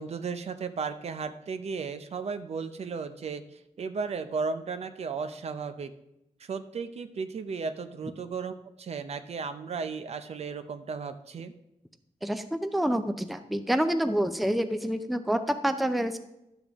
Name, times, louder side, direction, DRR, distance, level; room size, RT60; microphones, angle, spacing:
voice 1, 0.0-3.4 3.8-5.9 6.4-11.5, right 5 dB, 55° right, 10 dB, 0.6 m, -35 dB
voice 2, 12.2-16.2, equal, ahead, 9 dB, 0.5 m, -27 dB
12.0 x 7.1 x 3.5 m, 0.88 s
wide cardioid pair, 140°, 13 cm